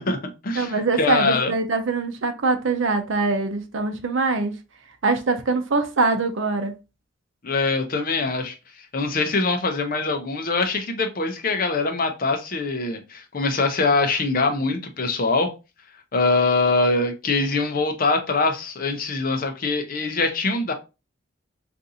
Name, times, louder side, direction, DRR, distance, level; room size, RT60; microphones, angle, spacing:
voice 1, 0.0-1.5 7.4-8.6 8.9-15.5 16.1-20.7, left 3 dB, 45° left, 0.6 m, -23 dB
voice 2, 0.6-4.6 5.0-6.7, right 3 dB, 70° right, 0.6 m, -23 dB
3.7 x 2.5 x 2.7 m
head